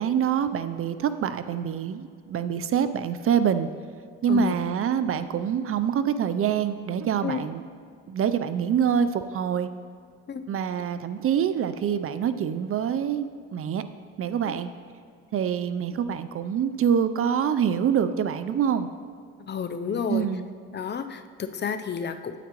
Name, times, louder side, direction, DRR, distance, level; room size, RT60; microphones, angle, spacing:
voice 1, 0.0-3.7 4.2-7.6 8.1-9.7 10.5-13.8 14.2-14.7 15.3-18.9 20.1-20.5, right 8 dB, 50° right, 12 dB, 0.4 m, -25 dB
voice 2, 19.4-20.3 20.7-22.4, left 7 dB, 35° left, 9 dB, 0.5 m, -31 dB
9.1 x 8.5 x 2.9 m, 2.3 s
cardioid pair, 90°, 30 cm